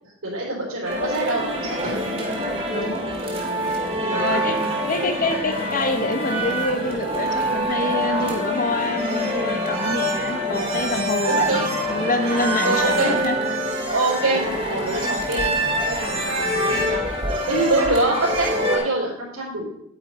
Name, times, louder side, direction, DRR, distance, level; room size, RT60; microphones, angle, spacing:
voice 1, 0.0-2.0 3.9-4.7 11.3-11.7 12.6-13.1 13.9-15.6 15.9-17.0 17.5-19.7, right 2 dB, 75° right, -8 dB, 4.0 m, -25 dB
sound 1, 0.8-18.8, equal, 30° right, 2.0 m, -25 dB
voice 2, 2.6-3.0 4.1-4.6 4.9-13.4, left 2 dB, 40° left, 7 dB, 1.1 m, -26 dB
10.0 x 8.9 x 4.3 m, 0.74 s
head